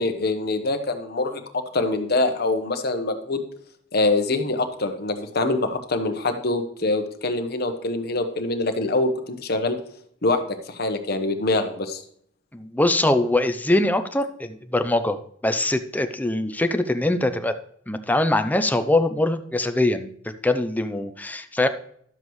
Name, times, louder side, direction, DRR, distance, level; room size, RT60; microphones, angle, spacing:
voice 1, 0.0-3.4 3.9-9.8 10.2-12.0, left 2 dB, 50° left, 6 dB, 1.1 m, -24 dB
voice 2, 12.5-17.5 17.9-20.1 20.4-21.7, left 1 dB, 10° left, 9 dB, 0.5 m, -22 dB
11.5 x 7.5 x 3.1 m, 0.66 s
head